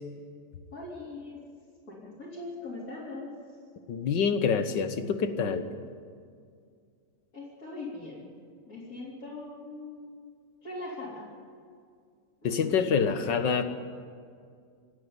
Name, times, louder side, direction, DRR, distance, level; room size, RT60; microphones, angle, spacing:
voice 1, 0.7-1.5 1.9-3.3 7.3-8.3 8.7-10.3 10.6-11.3 12.4-12.8, left 2 dB, 50° left, -8 dB, 4.4 m, -41 dB
voice 2, 3.9-5.6 12.4-13.6, left 6 dB, 90° left, 9 dB, 1.9 m, -26 dB
27.5 x 9.7 x 9.7 m, 2.2 s
omnidirectional pair, 1.9 m